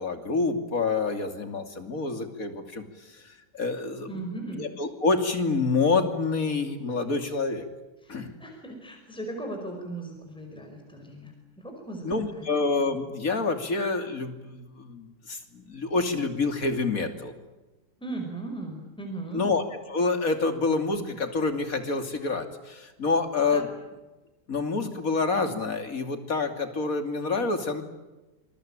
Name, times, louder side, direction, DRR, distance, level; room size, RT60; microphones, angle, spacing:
voice 1, 0.0-2.8 3.2-4.2 4.6-7.7 8.1-8.3 12.0-17.3 19.3-23.7 24.5-27.8, left 3 dB, 55° left, 7 dB, 3.2 m, -27 dB
voice 2, 4.1-4.7 8.0-12.5 18.0-19.4 23.5-23.6, right 2 dB, 5° left, 2 dB, 5.1 m, -38 dB
27.0 x 22.5 x 9.0 m, 1.1 s
omnidirectional pair, 1.7 m